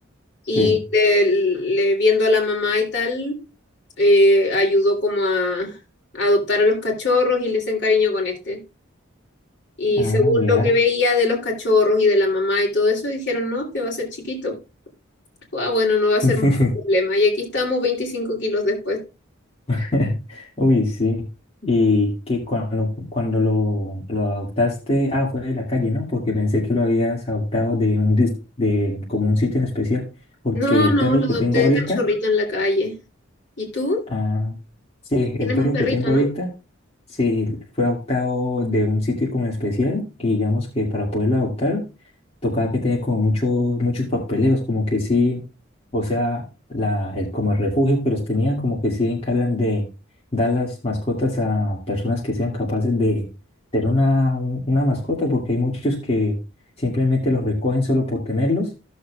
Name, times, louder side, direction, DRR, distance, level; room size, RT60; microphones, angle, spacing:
voice 1, 0.5-3.4 4.0-5.7 6.1-8.6 9.8-14.6 15.5-16.4 16.9-19.0 30.5-32.9 33.6-34.0 35.4-36.3, left 2 dB, 55° left, 0 dB, 2.9 m, -20 dB
voice 2, 9.9-10.7 16.2-16.7 19.7-21.2 21.6-30.0 30.4-32.0 34.1-34.6 35.1-36.5 37.1-41.8 42.4-45.4 45.9-46.4 46.7-49.9 50.3-53.2 53.7-56.4 56.8-58.7, left 2 dB, 30° left, -4 dB, 2.1 m, -22 dB
15.5 x 6.7 x 2.4 m, 0.29 s
head